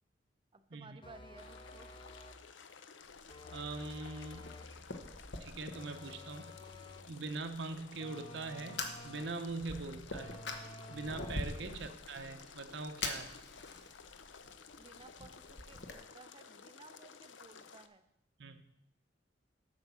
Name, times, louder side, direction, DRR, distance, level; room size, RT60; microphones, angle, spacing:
voice 1, 0.5-1.9 14.8-18.1, right 3 dB, 30° right, 11 dB, 0.5 m, -57 dB
sound 1, 1.0-2.5 3.3-4.8 5.7-7.2 8.0-9.4 10.1-11.6, left 2 dB, 25° left, 0.7 m, -51 dB
sound 2, 1.4-17.9, left 6 dB, 85° left, 0.6 m, -55 dB
Fire, 3.0-15.9, left 3 dB, 65° left, 1.1 m, -46 dB
voice 2, 3.5-4.5 5.4-6.5 7.1-10.3 10.9-13.3 18.4-18.6, right 3 dB, 70° right, 7 dB, 0.8 m, -42 dB
8.1 x 5.9 x 6.8 m, 0.82 s
head